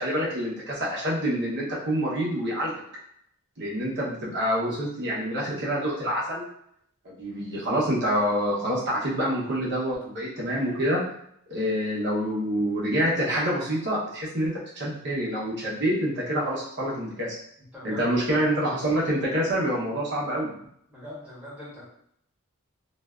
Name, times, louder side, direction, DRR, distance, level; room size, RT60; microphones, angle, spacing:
voice 1, 0.0-2.8 3.6-6.5 7.0-11.0 11.5-17.3 17.8-20.5, equal, 50° right, -6 dB, 0.8 m, -27 dB
voice 2, 17.7-18.5 20.9-21.9, left 1 dB, 5° right, -10 dB, 1.1 m, -42 dB
2.5 x 2.2 x 2.3 m, 0.71 s
head